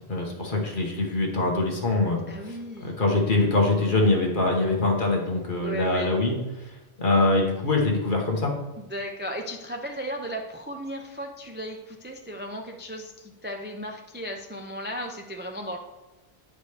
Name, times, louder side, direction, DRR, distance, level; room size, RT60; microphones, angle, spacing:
voice 1, 0.0-2.2 2.8-6.3 7.0-8.5, left 2 dB, 50° left, 0 dB, 1.3 m, -23 dB
voice 2, 2.3-3.0 5.6-6.1 8.8-15.8, equal, 15° right, 2 dB, 0.3 m, -35 dB
9.5 x 5.0 x 3.3 m, 1.1 s
omnidirectional pair, 1.1 m